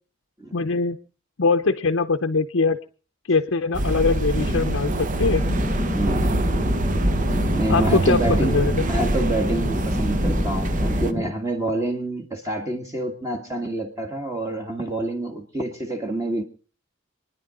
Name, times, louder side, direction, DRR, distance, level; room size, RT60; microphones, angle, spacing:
voice 1, 0.5-1.0 1.4-2.8 3.3-5.4 7.7-8.9, left 4 dB, 65° left, 0.7 m, -22 dB
sound 1, 3.7-11.1, right 1 dB, 40° right, 1.0 m, -24 dB
sound 2, 5.2-11.3, left 1 dB, 20° left, 1.1 m, -30 dB
voice 2, 6.0-6.3 7.5-16.4, right 1 dB, 15° right, 1.7 m, -27 dB
27.5 x 10.5 x 3.8 m
head